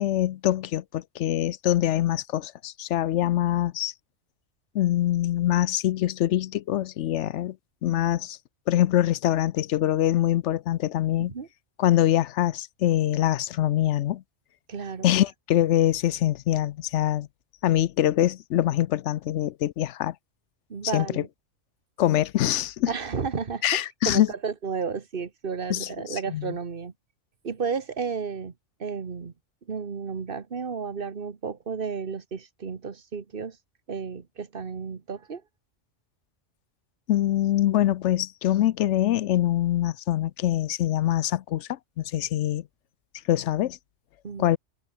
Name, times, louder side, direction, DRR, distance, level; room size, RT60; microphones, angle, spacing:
voice 1, 0.0-3.9 4.7-7.6 7.8-8.4 8.7-11.3 11.8-14.2 15.0-17.3 17.6-20.1 20.9-21.2 22.0-22.9 23.6-24.3 25.7-26.6 37.1-42.6 43.3-43.8 44.4-44.6, left 13 dB, 75° left, 0.9 m, -24 dB
voice 2, 14.7-15.1 20.7-21.3 22.9-26.9 27.4-28.5 28.8-29.3 29.7-33.6 33.9-35.4 44.2-44.5, right 5 dB, 45° right, 1.5 m, -32 dB
omnidirectional pair, 1.3 m